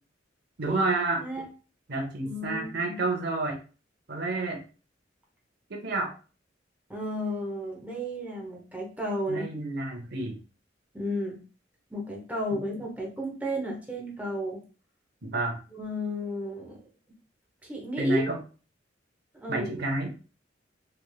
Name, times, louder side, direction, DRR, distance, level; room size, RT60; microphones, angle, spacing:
voice 1, 0.6-1.2 1.9-3.6 4.1-4.6 5.7-6.1 9.3-10.4 12.5-12.6 15.2-15.5 18.0-18.4 19.5-20.1, right 2 dB, 60° right, 3 dB, 0.7 m, -29 dB
voice 2, 2.2-3.0 6.9-9.5 10.9-11.4 11.9-14.6 15.7-16.8 17.6-18.3 19.3-19.7, equal, 10° right, -1 dB, 0.8 m, -33 dB
3.4 x 3.2 x 2.3 m, 0.36 s
head